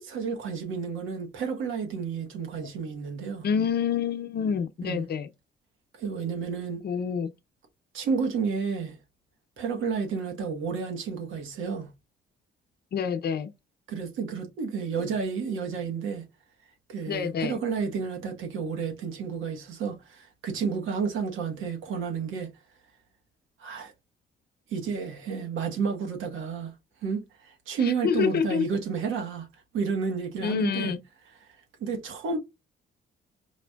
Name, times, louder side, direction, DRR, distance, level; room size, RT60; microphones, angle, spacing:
voice 1, 0.0-3.5 4.8-5.1 6.0-6.8 7.9-9.0 9.6-11.9 13.9-16.3 16.9-22.5 23.6-23.9 24.7-26.7 27.0-29.5 29.7-30.9 31.8-32.4, right 5 dB, 85° right, 1.3 m, -31 dB
voice 2, 3.4-5.3 6.8-7.3 12.9-13.5 17.1-17.6 27.8-28.7 30.4-31.0, left 7 dB, 55° left, 0.6 m, -27 dB
4.8 x 2.6 x 2.3 m
cardioid pair, 90°, 20 cm